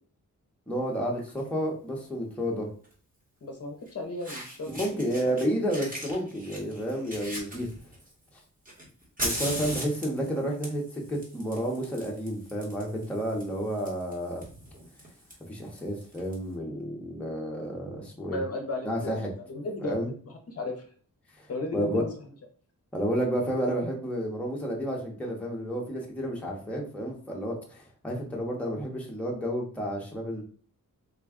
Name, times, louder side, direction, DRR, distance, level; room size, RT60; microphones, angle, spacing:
voice 1, 0.7-2.7 4.7-7.7 9.2-14.4 15.5-18.4 18.8-19.3 19.8-20.1 21.4-21.5 21.7-22.1 22.9-30.4, equal, 5° left, -2 dB, 0.6 m, -31 dB
Fire, 1.2-1.4 2.8-2.9 3.9-4.0 4.2-5.4 5.7-8.1 8.6-16.3, equal, 25° right, 1.0 m, -39 dB
voice 2, 3.4-5.2 18.3-19.1 19.5-20.8 21.5-22.1, left 2 dB, 50° left, 3 dB, 0.6 m, -34 dB
3.4 x 2.2 x 3.5 m, 0.44 s
wide cardioid pair, 170°, 33 cm